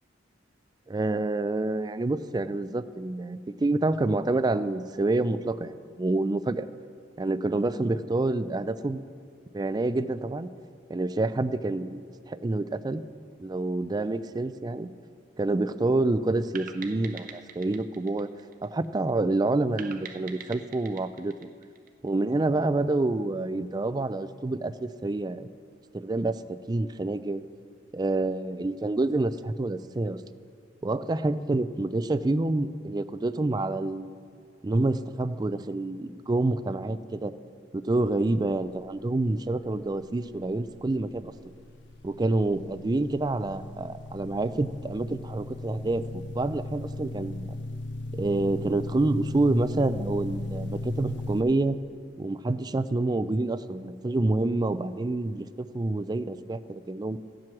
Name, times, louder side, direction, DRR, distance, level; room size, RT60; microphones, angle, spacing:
voice 1, 0.9-6.7 7.2-9.0 9.5-10.5 10.9-13.0 13.4-14.9 15.4-18.3 18.6-21.5 22.0-25.5 25.9-27.4 27.9-30.2 30.8-34.1 34.6-37.3 37.7-41.3 42.0-47.6 48.1-51.8 52.2-57.2, right 2 dB, 20° right, 13 dB, 0.3 m, -28 dB
sound 1, 16.6-19.1 19.8-22.3, right 7 dB, 45° right, 0.7 m, -44 dB
sound 2, 40.6-51.4, left 2 dB, 65° left, 0.8 m, -37 dB
15.5 x 7.6 x 6.0 m, 2.2 s
head